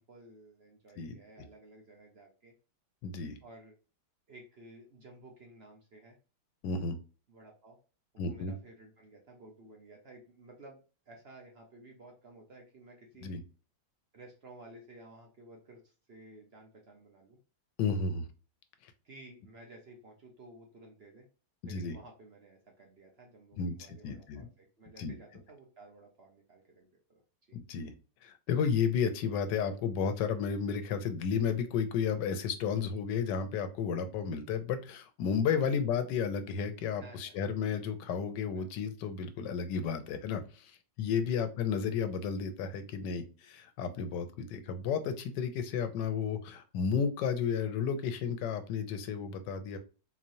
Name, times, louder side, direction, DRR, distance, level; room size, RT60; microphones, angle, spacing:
voice 1, 0.0-2.5 3.4-3.7 4.3-6.2 7.3-7.8 8.1-13.3 14.1-17.4 19.0-21.3 21.6-27.2 27.5-27.6 35.6-35.8 37.0-37.8 38.5-38.7 41.2-41.4, right 2 dB, 45° right, 1 dB, 0.9 m, -54 dB
voice 2, 3.0-3.4 6.6-7.0 8.2-8.5 13.2-13.4 17.8-18.3 21.6-21.9 23.6-23.8 24.0-24.5 25.0-25.1 27.5-27.9 28.2-49.8, left 6 dB, 90° left, 9 dB, 1.3 m, -32 dB
3.9 x 3.1 x 2.6 m, 0.35 s
omnidirectional pair, 1.8 m